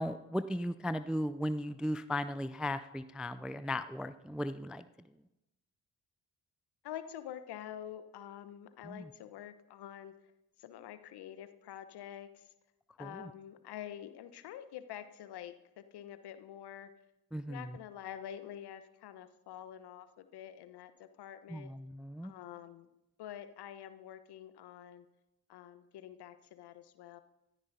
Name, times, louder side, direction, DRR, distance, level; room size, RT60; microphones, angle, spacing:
voice 1, 0.0-4.8 8.8-9.1 13.0-13.3 17.3-17.7 21.5-22.3, left 1 dB, ahead, 13 dB, 0.3 m, -36 dB
voice 2, 6.8-10.1 10.6-12.5 13.0-16.9 17.5-21.7 22.2-22.9 23.2-25.0 25.5-27.2, left 10 dB, 55° left, 12 dB, 1.0 m, -47 dB
25.5 x 9.5 x 2.7 m, 0.95 s
figure-of-eight pair, 40°, 46 cm